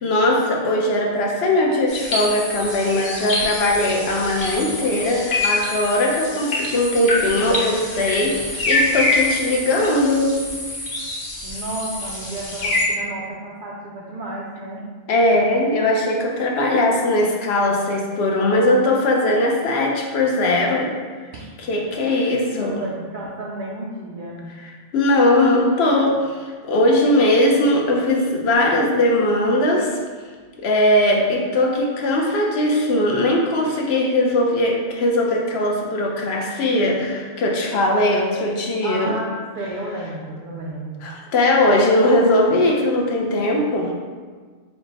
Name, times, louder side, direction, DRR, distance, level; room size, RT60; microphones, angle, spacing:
voice 1, 0.0-8.4 8.7-10.4 15.1-20.9 21.7-22.8 24.9-30.0 30.6-39.2 41.0-43.9, left 1 dB, 65° left, -1 dB, 0.8 m, -19 dB
sound 1, 1.9-12.8, left 2 dB, 50° left, 1.1 m, -25 dB
voice 2, 11.4-14.8 21.3-21.5 22.0-24.5 38.8-41.0, right 2 dB, 60° right, -4 dB, 0.5 m, -32 dB
4.5 x 2.1 x 3.8 m, 1.5 s
omnidirectional pair, 1.2 m